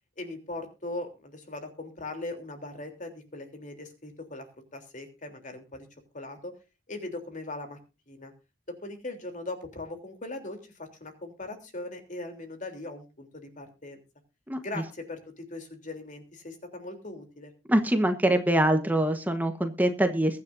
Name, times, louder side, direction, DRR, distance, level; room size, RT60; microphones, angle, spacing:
voice 1, 0.2-4.4 4.7-5.9 6.1-6.5 6.9-7.8 8.1-8.3 8.7-14.0 14.6-17.5, left 2 dB, 45° left, 5 dB, 3.3 m, -39 dB
voice 2, 17.7-20.4, right 1 dB, 10° right, 6 dB, 1.2 m, -24 dB
22.5 x 9.6 x 2.6 m, 0.29 s
head